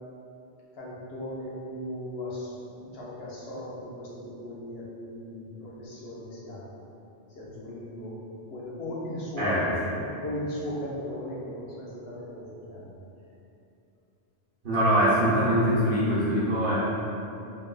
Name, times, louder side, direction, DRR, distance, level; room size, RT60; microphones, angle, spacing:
voice 1, 0.8-2.5 2.8-6.7 7.4-8.1 8.5-9.5 9.9-12.9, left 1 dB, 70° left, -6 dB, 0.9 m, -37 dB
voice 2, 9.4-10.0 14.6-16.8, equal, 55° right, -9 dB, 0.9 m, -23 dB
3.7 x 2.5 x 2.3 m, 2.7 s
omnidirectional pair, 1.1 m